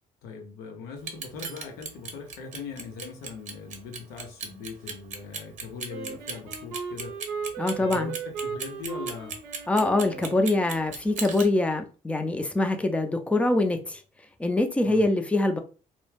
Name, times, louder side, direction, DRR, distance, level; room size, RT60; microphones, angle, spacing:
voice 1, 0.2-7.2 7.8-9.4 14.8-15.0, left 5 dB, 90° left, 0.6 m, -40 dB
Clock, 1.0-11.5, right 5 dB, 55° right, 0.7 m, -36 dB
Wind instrument woodwind instrument, 5.9-10.9, right 6 dB, 90° right, 0.6 m, -37 dB
voice 2, 7.6-8.1 9.7-14.0 14.4-15.6, left 2 dB, 10° left, 0.4 m, -24 dB
2.2 x 2.1 x 3.0 m
supercardioid pair, 75°, 15 cm